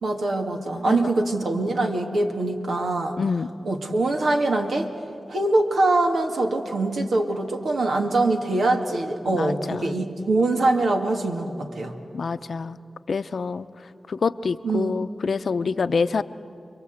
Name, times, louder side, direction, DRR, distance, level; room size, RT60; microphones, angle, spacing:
voice 1, 0.0-3.2 3.6-4.9 5.3-11.9 14.6-15.0, right 2 dB, 85° right, 3 dB, 2.0 m, -23 dB
voice 2, 3.2-3.5 9.3-10.0 12.1-12.8 13.1-13.7 14.1-16.2, left 5 dB, 75° left, 12 dB, 0.7 m, -26 dB
30.0 x 22.5 x 8.1 m, 2.6 s
cardioid pair, 50°, 0 cm